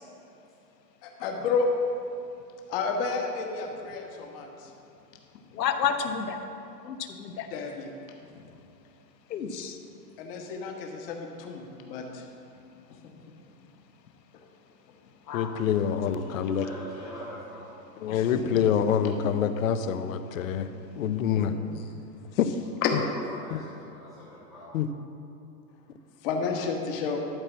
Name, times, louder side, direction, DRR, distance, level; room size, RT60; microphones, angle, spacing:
voice 1, 1.0-1.7 2.7-4.7 7.5-7.9 10.2-12.2 18.1-18.2 22.8-22.9 26.2-27.2, left 5 dB, 35° left, 2 dB, 1.3 m, -31 dB
voice 2, 5.5-6.4 6.8-7.5 8.3-8.4 9.3-9.8 15.3-15.5, left 7 dB, 85° left, 6 dB, 1.2 m, -30 dB
voice 3, 15.3-16.7 18.0-20.7 21.0-21.5 22.4-22.5 23.5-23.6 24.7-24.9, left 8 dB, 55° left, 10 dB, 0.7 m, -26 dB
voice 4, 16.0-17.7 23.0-24.7, equal, ahead, -19 dB, 0.4 m, -43 dB
12.5 x 4.4 x 7.3 m, 2.7 s
supercardioid pair, 160°, 49 cm